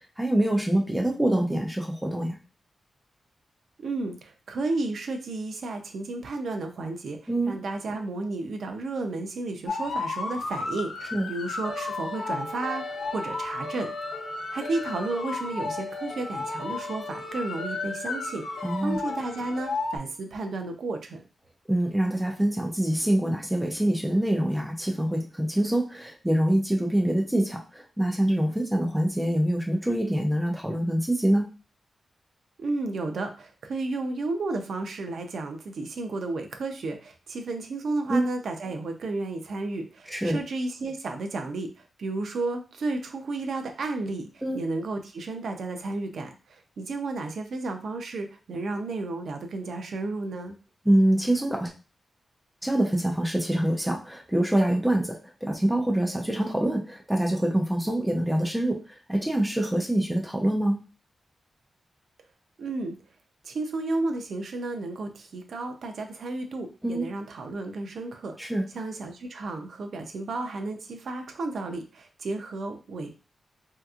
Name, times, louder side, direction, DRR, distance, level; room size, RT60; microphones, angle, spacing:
voice 1, 0.2-2.4 7.3-7.5 11.1-11.3 18.6-19.0 21.7-31.5 38.1-38.2 40.1-40.4 44.4-44.6 50.9-51.7 52.6-60.8 66.8-67.1 68.4-68.7, right 1 dB, 5° right, 1 dB, 0.5 m, -25 dB
voice 2, 3.8-7.2 7.5-13.9 14.5-18.4 18.8-21.2 32.6-44.3 44.5-50.6 62.6-63.0 63.4-68.4 68.7-73.1, right 2 dB, 65° right, 5 dB, 0.6 m, -32 dB
sound 1, 9.7-20.0, left 3 dB, 80° left, 0.7 m, -33 dB
3.4 x 2.8 x 2.4 m, 0.34 s
wide cardioid pair, 160°, 0 cm